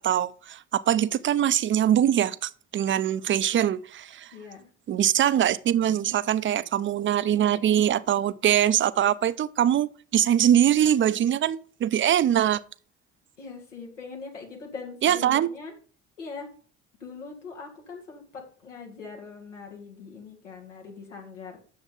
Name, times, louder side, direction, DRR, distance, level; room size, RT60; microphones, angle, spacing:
voice 1, 0.0-4.3 4.9-12.6 15.0-15.5, right 10 dB, 35° right, 0.5 m, -23 dB
voice 2, 4.3-4.7 13.4-15.7 16.2-16.5 17.0-21.6, left 4 dB, 85° left, 2.1 m, -41 dB
9.3 x 7.0 x 3.8 m
figure-of-eight pair, 55°, 36 cm